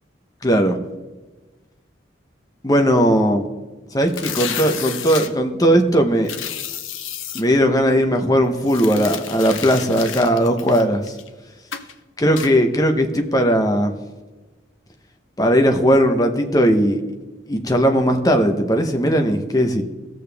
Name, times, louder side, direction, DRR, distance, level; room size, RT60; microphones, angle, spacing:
voice 1, 0.4-0.8 2.6-3.4 3.9-6.3 7.3-11.1 12.2-13.9 15.4-17.0 17.5-19.8, equal, 20° left, 5 dB, 0.8 m, -18 dB
sound 1, 4.1-5.3 6.2-7.4 8.6-11.3 11.7-11.9 12.4-12.5, left 9 dB, 85° left, 0.8 m, -31 dB
17.0 x 6.8 x 3.4 m, 1.2 s
head